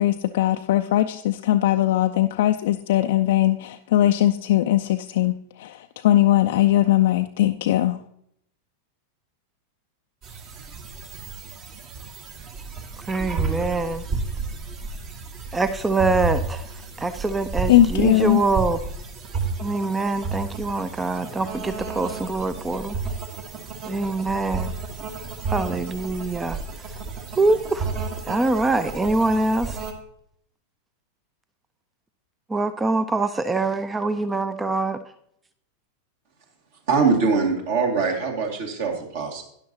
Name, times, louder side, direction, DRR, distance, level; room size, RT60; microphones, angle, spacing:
voice 1, 0.0-8.0 17.7-18.4, left 13 dB, 55° left, 6 dB, 0.4 m, -20 dB
sound 1, 10.2-29.9, right 4 dB, 35° right, 1.3 m, -32 dB
voice 2, 13.1-14.0 15.5-16.7 17.0-18.8 19.6-23.0 23.8-24.7 25.5-26.6 27.4-27.9 28.3-29.8 32.5-35.0, right 3 dB, 10° right, 13 dB, 0.5 m, -24 dB
voice 3, 36.9-39.4, right 4 dB, 55° right, 2 dB, 2.2 m, -22 dB
12.5 x 10.0 x 2.9 m, 0.71 s
figure-of-eight pair, 90°, 0 cm